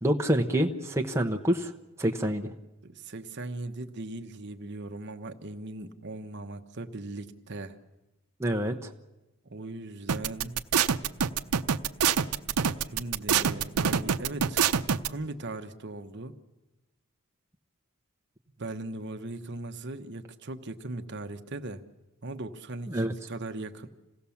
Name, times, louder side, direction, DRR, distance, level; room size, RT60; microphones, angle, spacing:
voice 1, 0.0-1.7 2.0-2.5 8.4-8.9 22.9-23.1, right 1 dB, 10° right, 2 dB, 0.9 m, -27 dB
voice 2, 2.8-7.8 9.5-10.6 12.9-16.3 18.6-21.8 22.2-23.9, right 2 dB, 50° right, 7 dB, 1.0 m, -39 dB
sound 1, 10.1-15.1, right 7 dB, 90° right, 0.7 m, -25 dB
27.0 x 17.0 x 7.1 m, 1.0 s
head